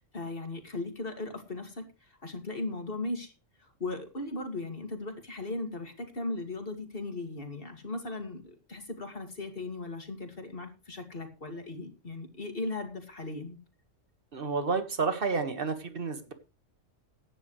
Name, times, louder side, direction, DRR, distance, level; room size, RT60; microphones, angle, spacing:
voice 1, 0.1-3.3 3.6-13.6, left 2 dB, 45° left, 5 dB, 2.6 m, -37 dB
voice 2, 14.3-16.3, right 4 dB, 45° right, 9 dB, 1.8 m, -30 dB
15.5 x 10.5 x 3.2 m, 0.29 s
omnidirectional pair, 1.3 m